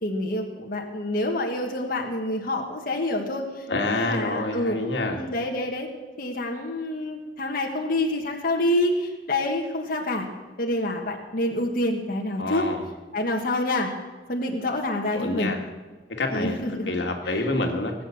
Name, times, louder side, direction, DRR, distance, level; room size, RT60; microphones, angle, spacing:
voice 1, 0.0-4.8 5.1-5.9 6.2-10.3 10.6-12.6 13.1-13.9 14.3-15.5 16.3-16.9 17.3-17.5, left 1 dB, 55° left, 1 dB, 1.6 m, -27 dB
voice 2, 3.7-5.2 12.4-12.8 15.1-15.6 16.1-16.6 16.9-17.9, left 2 dB, 90° left, 3 dB, 2.0 m, -27 dB
19.0 x 8.6 x 7.1 m, 1.3 s
head